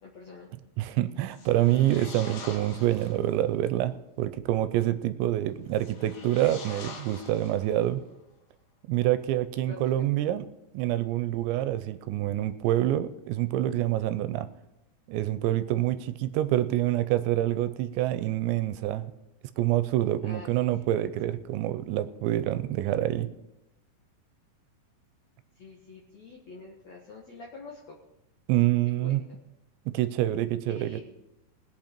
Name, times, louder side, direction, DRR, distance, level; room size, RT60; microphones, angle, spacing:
voice 1, 0.0-0.5 9.6-9.9 20.2-20.5 20.8-20.9 25.5-28.0 29.0-29.2 30.7-31.0, left 3 dB, 70° left, -2 dB, 1.7 m, -46 dB
voice 2, 0.8-8.0 8.9-10.5 10.7-14.5 15.1-19.1 19.6-23.3 28.5-29.2 29.9-31.0, right 13 dB, 85° right, 13 dB, 2.8 m, -26 dB
sound 1, 1.3-3.3 5.7-8.0, left 4 dB, 85° left, 4.5 m, -45 dB
20.0 x 8.5 x 4.4 m, 0.93 s
omnidirectional pair, 5.3 m